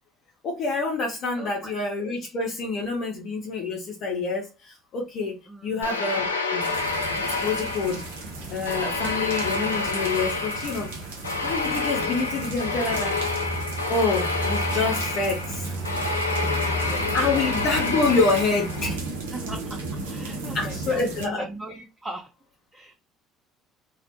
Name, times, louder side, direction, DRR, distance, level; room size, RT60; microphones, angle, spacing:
voice 1, 0.4-5.4 5.6-6.7 7.4-8.0 8.5-10.9 11.4-13.2 13.9-15.8 17.1-19.0 20.5-21.4, left 3 dB, 55° left, 0.8 m, -27 dB
voice 2, 1.4-2.2 5.5-5.9 16.3-17.5 18.1-18.2 19.3-22.3 22.7-22.9, right 1 dB, 20° right, 0.7 m, -40 dB
sound 1, 5.8-8.2 8.7-19.0, left 3 dB, 85° left, 0.3 m, -28 dB
sound 2, 6.6-21.3, right 3 dB, 80° right, 0.5 m, -36 dB
sound 3, 6.8-19.0, equal, 35° right, 1.1 m, -36 dB
2.7 x 2.0 x 2.9 m
figure-of-eight pair, 55°, 0 cm